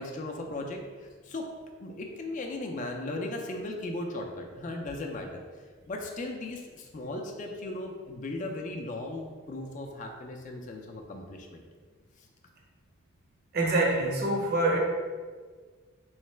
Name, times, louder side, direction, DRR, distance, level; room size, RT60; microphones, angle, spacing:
voice 1, 0.0-1.5 1.8-5.3 5.9-11.6, left 2 dB, 40° left, 2 dB, 0.4 m, -37 dB
voice 2, 13.5-14.8, right 2 dB, 50° right, -1 dB, 0.7 m, -25 dB
3.6 x 3.1 x 3.2 m, 1.5 s
head